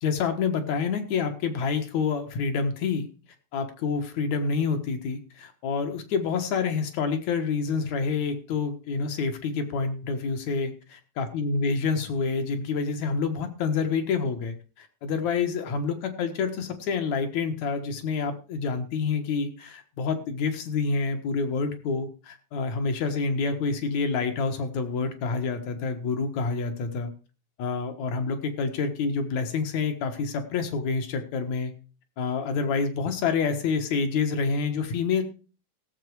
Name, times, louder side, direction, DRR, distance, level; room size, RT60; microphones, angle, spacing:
voice 1, 0.0-3.1 3.5-10.7 11.2-27.1 27.6-31.7 32.2-35.2, left 5 dB, 75° left, 7 dB, 2.8 m, -28 dB
16.0 x 7.6 x 4.7 m, 0.35 s
omnidirectional pair, 3.3 m